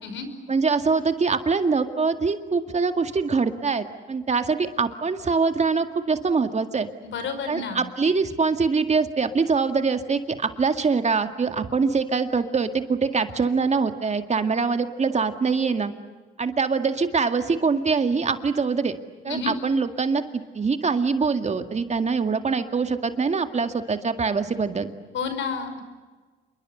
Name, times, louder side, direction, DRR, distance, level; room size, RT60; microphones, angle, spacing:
voice 1, 0.5-6.9 7.5-15.9 16.4-19.0 19.2-24.9, right 4 dB, 35° right, 8 dB, 2.1 m, -24 dB
voice 2, 7.0-7.9 19.3-19.5 25.1-25.8, left 5 dB, 70° left, 8 dB, 5.3 m, -30 dB
27.5 x 23.0 x 8.0 m, 1.3 s
cardioid pair, 90°, 20 cm